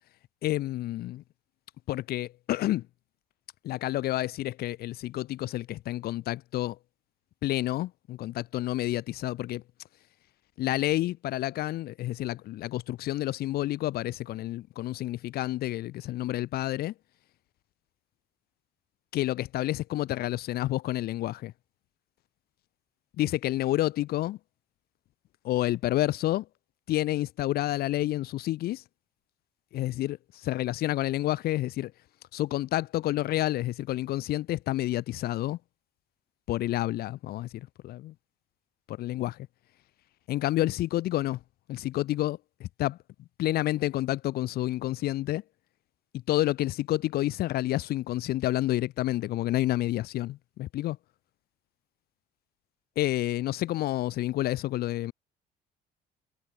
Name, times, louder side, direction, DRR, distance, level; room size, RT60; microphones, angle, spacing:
voice 1, 0.4-1.2 1.9-2.9 3.6-6.8 7.4-9.6 10.6-16.9 19.1-21.5 23.2-24.4 25.4-26.5 26.9-28.8 29.7-31.9 32.3-35.6 36.5-38.1 38.9-39.5 40.3-41.4 41.7-43.0 43.4-45.4 46.3-51.0 53.0-55.1, left 15 dB, 65° left, 0.6 m, -29 dB
cardioid pair, 110°, 17 cm